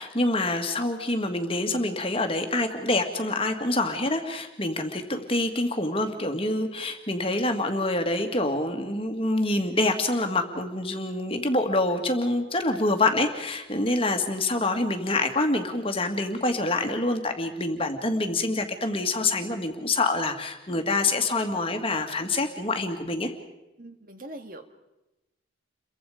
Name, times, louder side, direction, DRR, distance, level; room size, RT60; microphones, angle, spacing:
voice 1, 0.0-23.3, left 2 dB, 30° left, 5 dB, 2.1 m, -26 dB
voice 2, 23.8-24.6, right 1 dB, 45° right, 7 dB, 1.9 m, -42 dB
29.0 x 23.5 x 5.1 m, 0.99 s
head